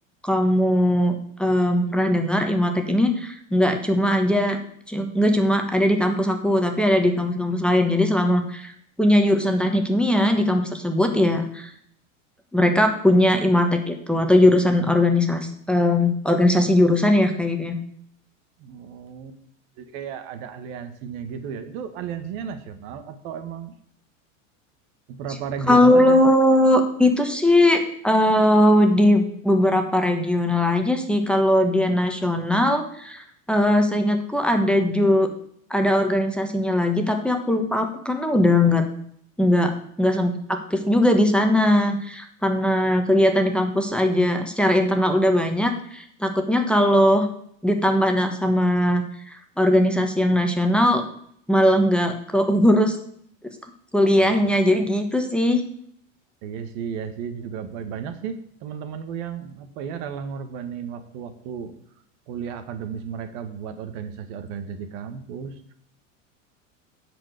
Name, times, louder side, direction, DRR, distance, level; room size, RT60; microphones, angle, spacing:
voice 1, 0.2-4.6 4.9-8.7 9.0-11.7 12.5-17.8 25.6-35.3 35.7-38.9 39.4-47.3 47.6-51.1 51.5-53.0 53.9-55.6, left 1 dB, ahead, 4 dB, 1.4 m, -20 dB
voice 2, 18.6-19.4 19.8-23.7 25.1-26.2 42.6-42.7 54.1-54.5 56.4-61.7 62.3-65.6, right 7 dB, 60° right, 9 dB, 1.6 m, -34 dB
10.5 x 5.2 x 8.1 m, 0.66 s
hypercardioid pair, 105°, 40 cm